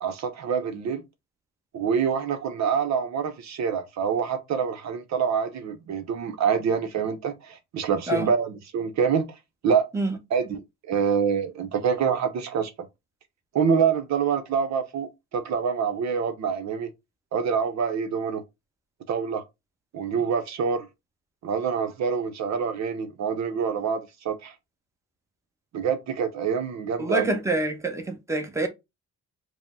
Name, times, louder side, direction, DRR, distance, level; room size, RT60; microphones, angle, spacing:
voice 1, 0.0-1.0 1.7-9.4 9.6-9.9 10.3-12.7 13.5-16.9 17.3-18.4 19.1-19.4 19.9-20.9 21.4-24.5 25.7-27.2, right 6 dB, 65° right, 0.7 m, -26 dB
voice 2, 27.0-28.7, right 2 dB, 10° right, 1.0 m, -26 dB
4.9 x 2.1 x 3.6 m
cardioid pair, 90°, 30 cm